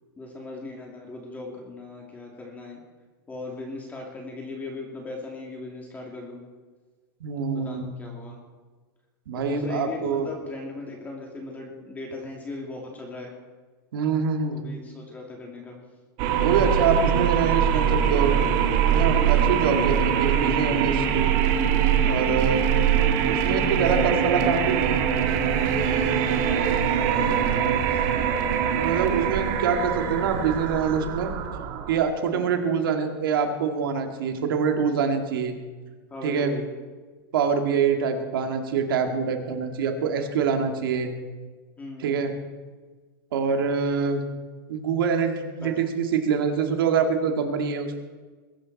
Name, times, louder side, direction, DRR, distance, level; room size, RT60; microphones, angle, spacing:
voice 1, 0.2-2.8 3.3-6.4 7.5-8.4 9.3-13.3 14.5-15.8 19.2-20.0 22.2-22.6 26.2-28.3 32.3-32.6 36.1-36.7 41.8-42.3 45.6-45.9, left 2 dB, 15° left, 0 dB, 2.6 m, -38 dB
voice 2, 7.2-8.0 9.3-10.3 13.9-14.6 16.4-18.4 18.9-21.3 22.0-22.6 23.3-25.0 28.7-31.3 31.9-35.5 36.2-36.5 37.3-41.1 42.0-42.3 43.3-44.2 44.7-48.0, right 6 dB, 90° right, 5 dB, 2.2 m, -25 dB
sound 1, 16.2-32.1, right 8 dB, 50° right, 1.7 m, -23 dB
21.5 x 11.5 x 4.2 m, 1.4 s
supercardioid pair, 150°, 11 cm